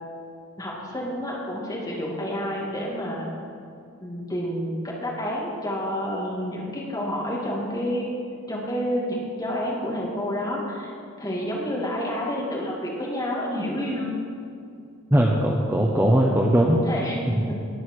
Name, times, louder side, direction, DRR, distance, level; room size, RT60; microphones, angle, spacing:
voice 1, 0.6-3.3 4.0-8.1 8.5-10.9 11.2-14.2 16.8-17.5, equal, 15° left, -4 dB, 2.6 m, -29 dB
voice 2, 15.1-16.8 17.3-17.5, right 1 dB, 10° right, -2 dB, 0.9 m, -20 dB
19.0 x 6.5 x 6.5 m, 2.4 s
head